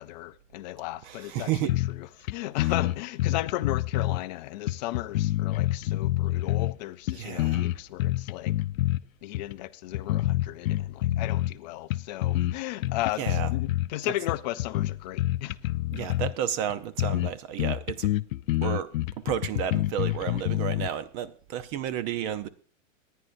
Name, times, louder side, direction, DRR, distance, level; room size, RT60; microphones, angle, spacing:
voice 1, 0.0-1.5 1.9-8.5 9.2-15.6, left 16 dB, 35° left, 0.5 m, -35 dB
voice 2, 1.0-1.8 2.6-2.7 7.1-7.6 13.2-13.5 14.0-14.2 15.9-18.1 18.6-18.9 19.2-22.5, right 10 dB, 30° right, 0.6 m, -32 dB
sound 1, 1.7-2.0 2.3-2.4 2.6-4.2 4.7-6.8 7.1-9.0 9.3-9.5 9.9-11.6 11.9-12.5 12.8-13.9 14.3-16.3 16.7-16.8 17.0-17.3 17.6-20.9, left 16 dB, 85° left, 0.6 m, -27 dB
25.5 x 10.0 x 2.6 m
supercardioid pair, 155°, 39 cm